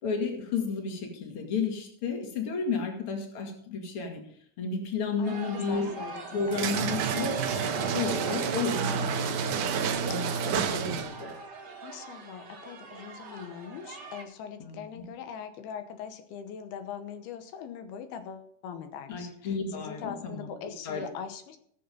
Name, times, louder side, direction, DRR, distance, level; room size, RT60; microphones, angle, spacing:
voice 1, 0.0-4.2 4.6-5.9 6.3-11.3 14.6-15.0 19.1-20.5 20.8-21.0, left 5 dB, 40° left, 2 dB, 2.7 m, -32 dB
voice 2, 5.2-6.9 11.8-21.6, left 7 dB, 85° left, 8 dB, 3.0 m, -41 dB
sound 1, 5.2-14.2, right 3 dB, 35° right, 2.0 m, -43 dB
sound 2, 6.5-11.3, right 7 dB, 70° right, 2.2 m, -29 dB
17.0 x 6.9 x 5.4 m, 0.65 s
omnidirectional pair, 4.4 m